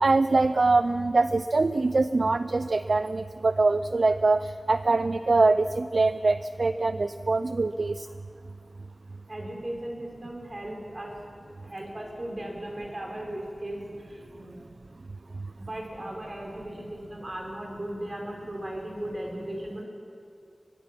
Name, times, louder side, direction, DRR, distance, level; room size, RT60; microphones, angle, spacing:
voice 1, 0.0-8.1, right 3 dB, 65° right, 11 dB, 0.4 m, -23 dB
voice 2, 9.3-14.6 15.6-19.8, right 1 dB, 45° right, 0 dB, 4.9 m, -37 dB
22.0 x 21.5 x 6.0 m, 2.6 s
wide cardioid pair, 50°, 0 cm